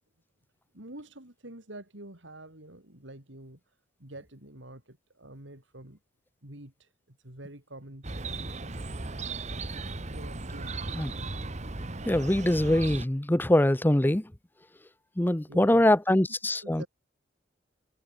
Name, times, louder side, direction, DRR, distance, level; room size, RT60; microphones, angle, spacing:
voice 1, 0.7-3.6 4.0-6.0 6.4-8.1 10.1-10.9 15.5-16.2 16.6-16.9, right 1 dB, 80° right, 5.2 m, -47 dB
Chirp tweet, 8.0-13.1, right 3 dB, 40° right, 1.5 m, -36 dB
voice 2, 12.0-14.2 15.2-16.8, left 1 dB, 10° left, 0.7 m, -23 dB
head